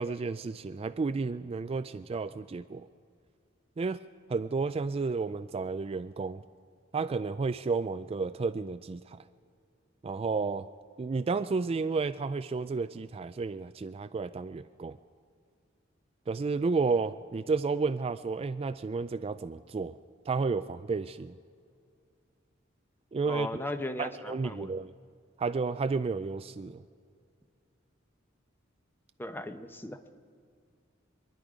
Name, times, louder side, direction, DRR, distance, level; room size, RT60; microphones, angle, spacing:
voice 1, 0.0-2.9 3.8-4.0 4.3-6.4 6.9-9.2 10.0-10.7 11.0-15.0 16.3-19.9 20.3-21.4 23.1-23.5 24.0-24.9 25.4-26.8, right 4 dB, 30° right, 11 dB, 0.3 m, -32 dB
voice 2, 23.3-24.7 29.2-30.0, left 1 dB, 10° left, 8 dB, 0.8 m, -37 dB
27.0 x 10.5 x 5.0 m, 2.2 s
head